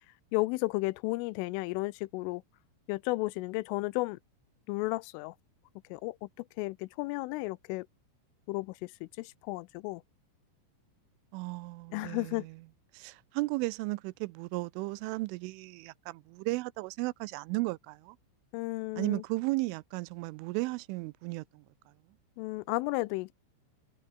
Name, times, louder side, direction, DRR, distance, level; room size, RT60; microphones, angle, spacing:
voice 1, 0.3-2.4 2.9-4.2 4.7-5.3 5.9-6.3 6.6-7.9 8.5-10.0 11.9-12.5 18.5-19.2 22.4-23.3, left 22 dB, 85° left, 3.2 m, -33 dB
voice 2, 11.3-12.6 12.9-18.2 19.0-21.6, right 22 dB, 85° right, 3.1 m, -35 dB
omnidirectional pair, 5.6 m